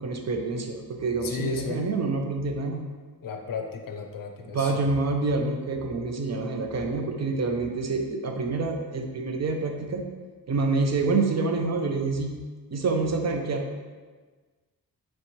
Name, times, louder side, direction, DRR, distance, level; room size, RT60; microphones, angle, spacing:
voice 1, 0.0-2.8 4.5-10.0 10.5-12.3 12.7-13.7, right 3 dB, 45° right, 3 dB, 0.4 m, -27 dB
voice 2, 1.2-1.8 3.2-4.8, left 3 dB, 60° left, 4 dB, 0.5 m, -34 dB
4.1 x 3.2 x 3.0 m, 1.4 s
wide cardioid pair, 150°, 38 cm